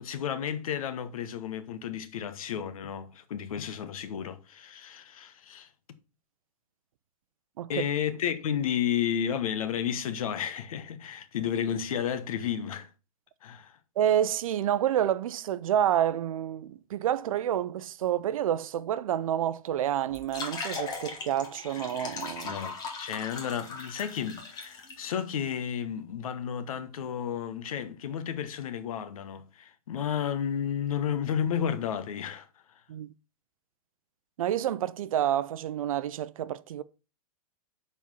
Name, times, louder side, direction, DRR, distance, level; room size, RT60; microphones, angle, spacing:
voice 1, 0.0-5.7 7.7-12.9 13.4-13.8 21.7-32.5, left 9 dB, 70° left, 1.2 m, -32 dB
voice 2, 14.0-22.6 32.9-33.1 34.4-36.8, right 10 dB, 65° right, 0.6 m, -28 dB
sound 1, 20.1-25.0, left 4 dB, 20° left, 1.6 m, -39 dB
7.4 x 4.3 x 5.5 m
hypercardioid pair, 145°, 19 cm